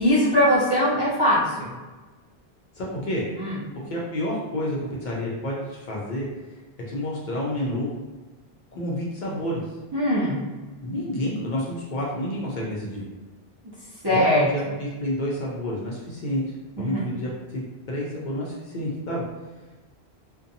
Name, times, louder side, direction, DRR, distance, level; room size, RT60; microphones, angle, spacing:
voice 1, 0.0-1.7 3.4-3.5 9.9-10.4 14.0-14.5 16.9-17.1, equal, 30° right, -9 dB, 0.5 m, -21 dB
voice 2, 2.8-3.2 3.9-6.3 6.9-7.9 8.7-9.6 10.8-13.0 14.1-16.4 16.8-19.2, left 1 dB, 55° left, -4 dB, 0.6 m, -29 dB
2.6 x 2.2 x 2.6 m, 1.2 s
omnidirectional pair, 1.1 m